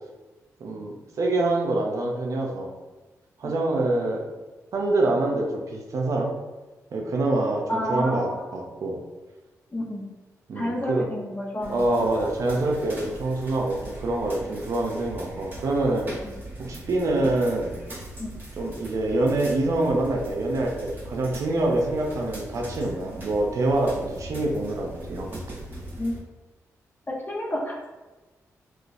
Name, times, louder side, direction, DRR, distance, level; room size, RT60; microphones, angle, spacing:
voice 1, 0.6-2.7 3.4-4.2 4.7-6.3 6.9-9.0 10.5-11.1 11.6-16.1 16.6-17.8 18.6-25.6, right 2 dB, 65° right, 0 dB, 0.6 m, -25 dB
voice 2, 7.7-8.6 9.7-10.1 10.5-12.1 16.2-16.3 18.2-18.4 26.0-26.1 27.1-27.9, left 1 dB, 30° left, -2 dB, 0.8 m, -30 dB
sound 1, 11.6-26.2, right 1 dB, 35° right, 1.3 m, -40 dB
3.7 x 2.4 x 2.5 m, 1.2 s
cardioid pair, 75°, 6 cm